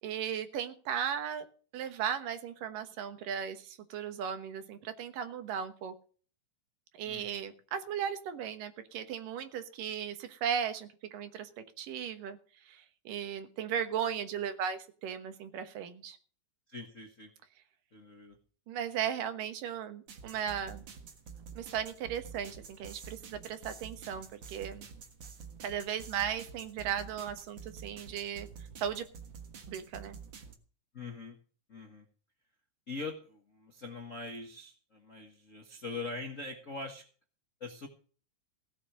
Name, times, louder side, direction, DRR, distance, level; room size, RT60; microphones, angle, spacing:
voice 1, 0.0-1.5 1.7-5.9 7.0-11.5 11.8-12.4 12.6-16.2 18.7-20.8 21.6-24.8 25.6-28.5 28.8-29.1 29.7-30.2, right 8 dB, 70° right, 9 dB, 2.8 m, -36 dB
voice 2, 7.0-7.5 16.7-17.3 17.9-18.4 30.9-31.4 31.7-32.0 32.9-37.0 37.6-37.9, left 3 dB, 75° left, 4 dB, 0.7 m, -42 dB
sound 1, 20.1-30.5, right 6 dB, 50° right, 1.5 m, -49 dB
16.5 x 7.5 x 6.3 m, 0.41 s
omnidirectional pair, 4.1 m